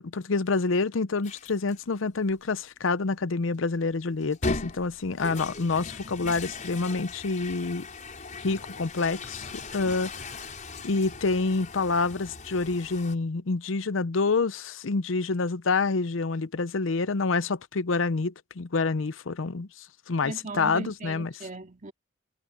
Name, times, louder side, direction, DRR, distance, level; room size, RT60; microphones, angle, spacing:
voice 1, 0.0-7.9 8.4-10.4 10.8-19.7 20.1-21.3, left 4 dB, 75° left, 0.7 m, -27 dB
sound 1, 1.2-1.8 2.4-2.5 4.2-13.2, left 3 dB, 40° left, 5.5 m, -38 dB
voice 2, 20.2-21.9, right 3 dB, 40° right, 2.2 m, -38 dB
head